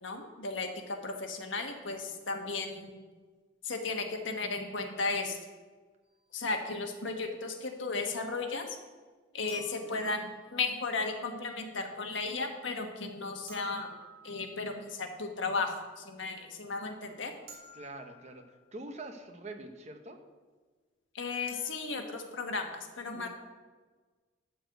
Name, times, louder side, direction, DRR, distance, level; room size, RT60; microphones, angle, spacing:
voice 1, 0.0-3.0 3.6-5.4 6.3-8.8 9.3-13.9 14.2-17.3 21.1-22.7 23.0-23.3, left 3 dB, 75° left, 3 dB, 1.4 m, -35 dB
sound 1, 6.0-6.2 9.5-10.8 13.5-14.8 17.5-18.7 21.5-21.7, right 3 dB, 55° right, 3.0 m, -53 dB
voice 2, 17.7-18.4 18.7-20.2 23.1-23.3, right 2 dB, 35° right, 5 dB, 1.0 m, -44 dB
12.5 x 4.7 x 7.9 m, 1.4 s
head